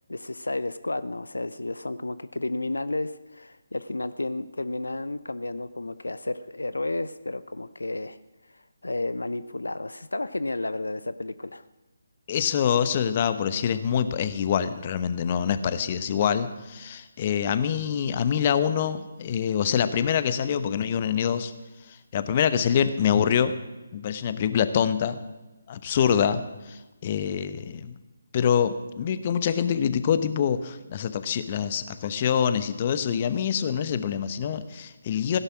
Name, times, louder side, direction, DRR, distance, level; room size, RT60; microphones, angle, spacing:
voice 1, 0.1-8.2 8.5-11.6, left 2 dB, 75° left, 14 dB, 0.6 m, -32 dB
voice 2, 12.3-21.5 22.1-23.5 23.9-25.2 25.7-27.9 28.3-35.4, left 8 dB, 30° left, 13 dB, 0.9 m, -25 dB
16.5 x 11.0 x 6.0 m, 1.1 s
figure-of-eight pair, 145°, 0 cm